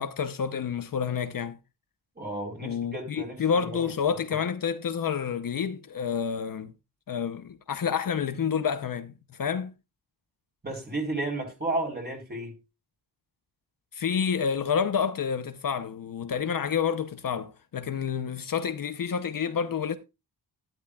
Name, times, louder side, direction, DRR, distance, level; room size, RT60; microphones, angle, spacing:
voice 1, 0.0-1.6 2.6-6.7 7.1-9.7 13.9-20.0, left 7 dB, 55° left, 0.8 m, -29 dB
voice 2, 2.2-3.8 10.6-12.6, right 2 dB, 25° right, 4.0 m, -33 dB
12.0 x 12.0 x 2.4 m
wide cardioid pair, 130°, 41 cm